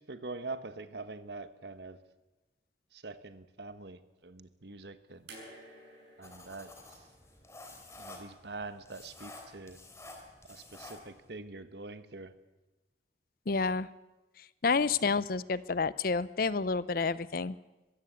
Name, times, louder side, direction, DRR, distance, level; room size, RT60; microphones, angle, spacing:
voice 1, 0.1-2.0 2.9-5.3 6.2-7.0 8.0-9.8 10.5-12.3, right 3 dB, 65° right, 12 dB, 1.3 m, -44 dB
sound 1, 5.3-8.4 9.6-9.7, right 2 dB, 90° right, 7.9 m, -54 dB
sound 2, 6.2-11.3, left 2 dB, 15° left, 3.2 m, -50 dB
voice 2, 13.5-13.9 14.6-17.6, left 4 dB, 55° left, 18 dB, 0.6 m, -29 dB
22.5 x 15.5 x 8.2 m, 1.1 s
head